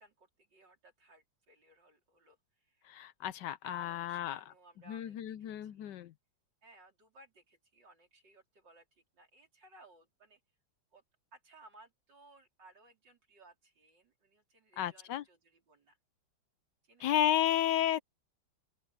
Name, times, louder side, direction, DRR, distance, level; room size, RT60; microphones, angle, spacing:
voice 1, 0.0-2.9 3.6-6.1 6.6-10.4 10.9-11.0 11.3-16.0 16.8-17.1, right 2 dB, 65° right, 5.1 m, -60 dB
voice 2, 2.9-4.4 4.9-6.1 14.8-15.2 17.0-18.0, left 11 dB, 70° left, 1.2 m, -32 dB
open air
omnidirectional pair, 2.1 m